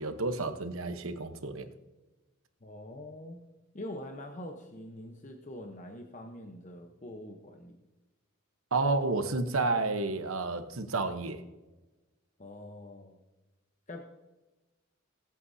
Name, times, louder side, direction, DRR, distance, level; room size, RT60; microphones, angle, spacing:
voice 1, 0.0-1.7 8.7-11.4, right 3 dB, 80° right, 1.0 m, -30 dB
voice 2, 2.6-3.4 3.7-7.8 12.4-13.2 13.9-14.0, left 1 dB, 35° left, 0.9 m, -44 dB
20.5 x 8.4 x 2.8 m
head